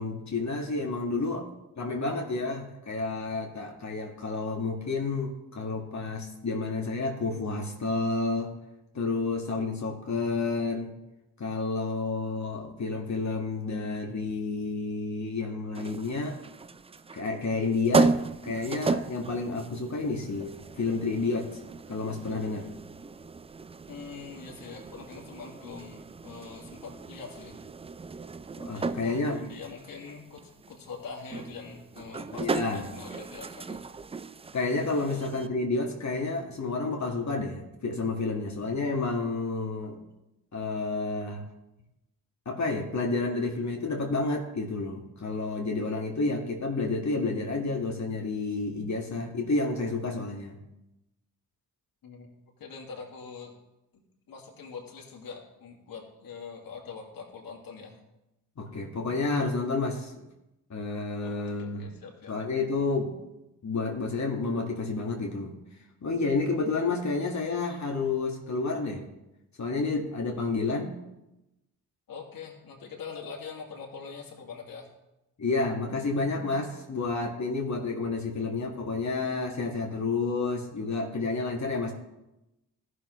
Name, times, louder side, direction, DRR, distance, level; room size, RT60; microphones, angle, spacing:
voice 1, 0.0-1.5 1.8-8.5 8.9-10.9 11.4-16.4 17.1-18.2 18.4-21.6 21.9-22.7 28.6-29.4 32.3-32.9 34.5-40.0 40.5-41.5 42.5-50.6 58.6-60.1 60.7-61.9 62.3-63.2 63.6-65.5 66.0-69.1 69.6-70.9 75.4-81.9, left 3 dB, 45° left, 1 dB, 1.8 m, -30 dB
sound 1, 15.7-35.5, right 3 dB, 15° right, 0.4 m, -35 dB
voice 2, 23.9-27.6 28.7-33.8 35.1-35.2 52.0-52.3 52.6-53.5 53.9-54.0 54.3-58.0 61.2-62.3 72.1-74.9, left 5 dB, 60° left, 0 dB, 2.2 m, -43 dB
15.0 x 6.4 x 3.2 m, 0.94 s
hypercardioid pair, 45°, 39 cm